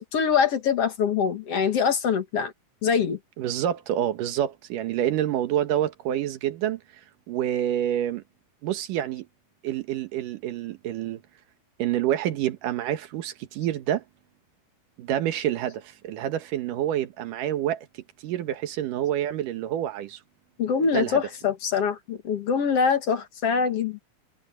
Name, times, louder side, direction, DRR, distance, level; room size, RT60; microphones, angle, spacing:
voice 1, 0.0-2.5 2.8-3.2 20.6-24.0, left 6 dB, 55° left, 2.3 m, -24 dB
voice 2, 3.4-6.8 7.3-8.2 8.6-9.3 9.6-11.2 11.8-14.0 15.0-17.9 18.2-20.2 20.8-21.2, right 11 dB, 90° right, 2.9 m, -27 dB
omnidirectional pair, 3.6 m